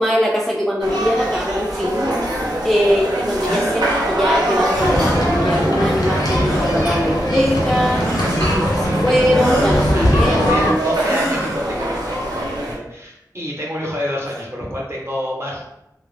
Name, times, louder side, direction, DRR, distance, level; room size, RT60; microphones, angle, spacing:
voice 1, 0.0-2.1 2.6-8.1 8.4-10.6 14.1-14.2, equal, 5° left, -3 dB, 0.3 m, -21 dB
sound 1, 0.8-12.8, right 1 dB, 85° right, 0.5 m, -23 dB
Male gasps, 3.4-3.8 4.9-5.3 6.4-6.9 8.0-8.5 9.3-9.8 11.0-11.7, right 1 dB, 70° right, 0.9 m, -26 dB
sound 2, 4.8-10.7, equal, 70° left, 0.5 m, -20 dB
voice 2, 8.8-9.1 9.9-15.7, left 1 dB, 40° right, -3 dB, 0.8 m, -28 dB
2.3 x 2.0 x 3.1 m, 0.86 s
wide cardioid pair, 55°, 7 cm